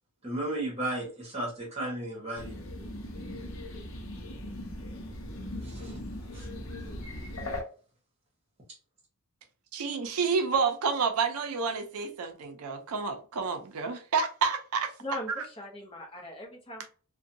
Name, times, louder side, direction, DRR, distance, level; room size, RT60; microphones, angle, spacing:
voice 1, 0.2-2.5 5.6-6.0 6.3-6.5, right 1 dB, 30° right, 1.0 m, -34 dB
binaural birds woodpecker, 2.3-7.6, left 1 dB, 65° left, 0.7 m, -39 dB
voice 2, 9.7-14.9, right 5 dB, 80° right, 0.5 m, -29 dB
voice 3, 15.0-16.9, left 1 dB, 25° left, 0.6 m, -39 dB
2.6 x 2.2 x 2.6 m
head